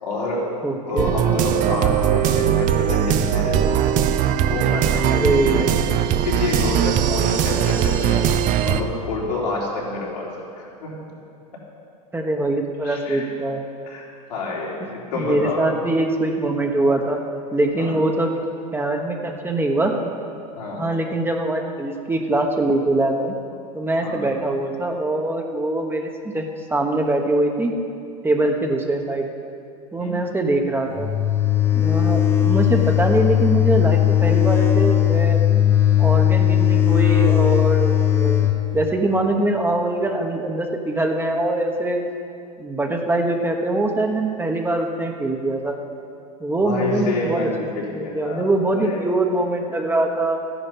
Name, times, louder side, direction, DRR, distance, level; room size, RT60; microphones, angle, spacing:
voice 1, 0.0-0.5 0.8-3.8 4.5-5.7 6.2-8.3 8.6-10.3 10.6-11.1 12.8-13.2 13.8-14.0 14.3-15.6 17.8-18.0 20.6-20.9 24.0-24.3 30.0-30.2 46.6-49.0, left 3 dB, 85° left, -5 dB, 3.6 m, -28 dB
voice 2, 0.6-1.1 5.1-5.7 12.1-13.6 15.1-17.2 17.5-18.3 18.7-19.9 20.8-23.4 23.7-26.4 26.7-27.7 28.2-29.3 29.9-31.1 31.7-35.4 36.0-38.5 38.7-42.0 42.6-45.8 46.4-47.5 47.9-50.4, right 2 dB, 10° right, 2 dB, 1.2 m, -23 dB
sound 1, 1.0-8.8, right 10 dB, 40° right, 0.7 m, -20 dB
sound 2, 31.0-38.6, left 11 dB, 10° left, 1.2 m, -17 dB
13.5 x 10.0 x 5.5 m, 2.4 s
hypercardioid pair, 95°, 20 cm